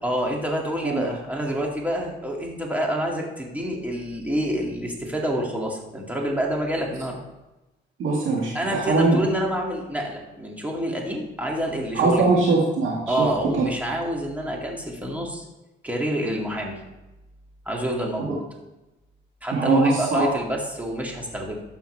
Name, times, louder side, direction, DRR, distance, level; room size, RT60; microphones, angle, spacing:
voice 1, 0.0-7.2 8.5-12.3 13.1-15.4 15.8-16.8 17.7-18.4 19.4-21.6, equal, 5° right, -1 dB, 2.3 m, -27 dB
voice 2, 8.0-9.2 11.9-13.3 13.5-13.6 19.5-20.3, right 3 dB, 80° right, -2 dB, 1.8 m, -21 dB
12.0 x 7.0 x 3.4 m, 1.0 s
cardioid pair, 90°, 20 cm